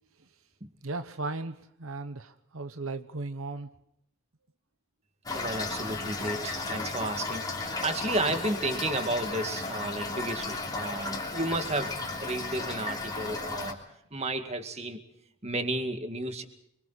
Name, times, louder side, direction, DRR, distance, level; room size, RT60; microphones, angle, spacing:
voice 1, 0.8-3.7, right 3 dB, 80° right, 9 dB, 1.1 m, -36 dB
Toilet flush / Fill (with liquid), 5.3-13.7, left 3 dB, 20° left, 3.2 m, -34 dB
voice 2, 5.3-13.8 14.1-15.0 15.4-16.4, right 2 dB, 30° right, 7 dB, 2.2 m, -32 dB
29.0 x 23.5 x 4.2 m, 0.75 s
head